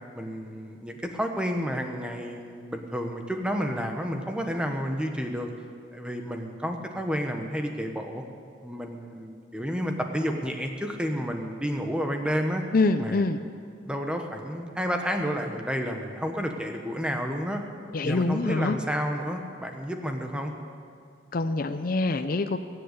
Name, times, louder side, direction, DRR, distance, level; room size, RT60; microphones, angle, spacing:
voice 1, 0.1-5.5 5.9-8.2 8.6-12.6 13.0-13.2 13.9-17.6 18.0-20.5, equal, 5° right, 3 dB, 1.2 m, -30 dB
voice 2, 12.7-13.4 17.9-18.8 21.3-22.6, left 3 dB, 50° left, 8 dB, 0.5 m, -25 dB
21.5 x 7.9 x 8.3 m, 2.3 s
head